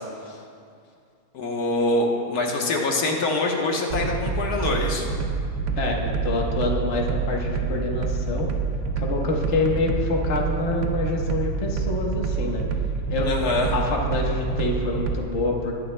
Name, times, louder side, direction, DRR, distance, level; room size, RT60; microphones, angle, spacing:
voice 1, 1.3-5.1 13.2-13.7, left 2 dB, 85° left, 0 dB, 1.6 m, -24 dB
sound 1, 3.9-15.1, right 5 dB, 70° right, 1.2 m, -27 dB
voice 2, 5.8-8.5 9.0-12.6 13.1-13.3 13.7-15.7, left 2 dB, 50° left, 0 dB, 1.5 m, -26 dB
20.5 x 10.5 x 2.2 m, 2.4 s
omnidirectional pair, 1.6 m